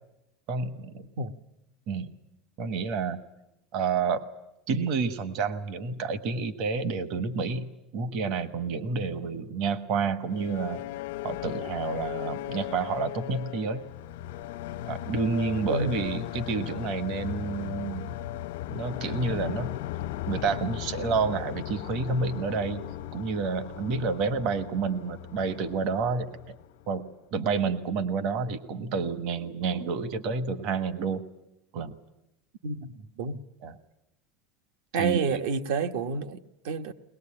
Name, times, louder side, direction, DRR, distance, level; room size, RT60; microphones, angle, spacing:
voice 1, 0.5-1.0 1.9-2.1 2.6-3.2 3.7-4.3 4.7-7.6 7.9-10.9 11.2-13.8 14.9-18.1 18.7-19.7 20.3-22.8 23.1-26.6 26.9-31.2 31.7-32.0 33.6-33.8 34.9-35.4, right 5 dB, 45° right, 1.2 m, -29 dB
sound 1, 10.2-27.1, left 14 dB, 90° left, 0.8 m, -37 dB
voice 2, 32.6-33.4 34.9-36.9, right 5 dB, 70° right, 1.2 m, -29 dB
22.5 x 20.5 x 8.7 m
supercardioid pair, 175°, 0 cm